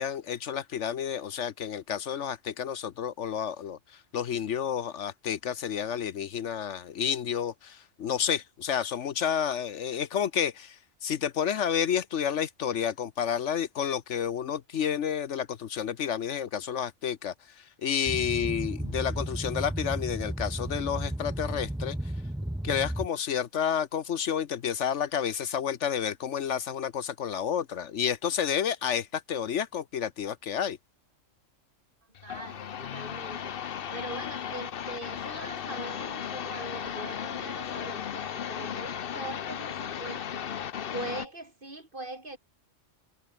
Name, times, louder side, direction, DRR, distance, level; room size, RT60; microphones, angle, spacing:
voice 1, 0.0-3.8 4.1-22.0 22.6-30.8, left 8 dB, 70° left, 1.2 m, -30 dB
Boat Water vehicle, 18.1-23.1, right 1 dB, 5° right, 0.7 m, -34 dB
sound 1, 32.2-41.3, left 9 dB, 55° left, 0.9 m, -36 dB
voice 2, 32.2-33.5 33.9-40.5 40.9-42.4, right 2 dB, 45° right, 3.9 m, -41 dB
omnidirectional pair, 1.3 m